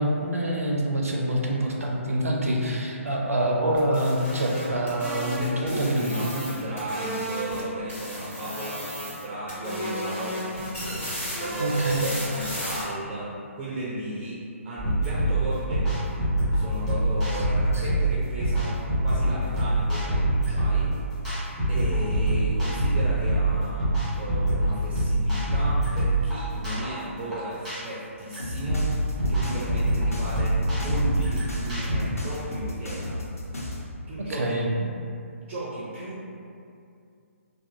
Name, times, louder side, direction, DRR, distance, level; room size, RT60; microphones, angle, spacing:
voice 1, 0.0-6.2 11.6-12.1 17.7-17.8 34.2-34.7, right 1 dB, 85° right, -1 dB, 0.4 m, -26 dB
sound 1, 3.8-7.6 7.9-9.2 9.5-12.8, equal, 60° left, 1.3 m, -34 dB
voice 2, 5.4-11.1 11.4-16.3 16.5-21.0 21.7-29.0 29.3-33.2 34.1-34.9 35.4-36.3, right 1 dB, 25° right, -7 dB, 0.4 m, -35 dB
sound 2, 14.8-32.0, right 1 dB, ahead, 1.2 m, -25 dB
sound 3, 28.4-33.8, left 2 dB, 85° left, 0.5 m, -34 dB
2.4 x 2.2 x 2.7 m, 2.4 s
figure-of-eight pair, 140°, 8 cm